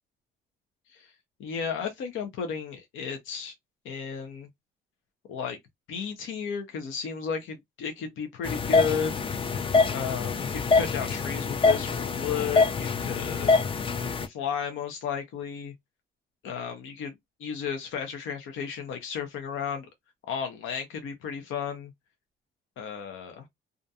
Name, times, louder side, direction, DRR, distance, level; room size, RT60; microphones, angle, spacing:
voice 1, 1.4-3.5 3.8-4.5 5.3-5.6 5.9-9.4 9.9-13.5 14.3-15.7 16.4-17.1 17.4-19.9 20.3-21.9 22.8-23.4, left 7 dB, 80° left, 0.7 m, -33 dB
sound 1, 8.4-14.3, left 4 dB, 25° left, 0.4 m, -25 dB
2.5 x 2.2 x 2.7 m
cardioid pair, 90°, 20 cm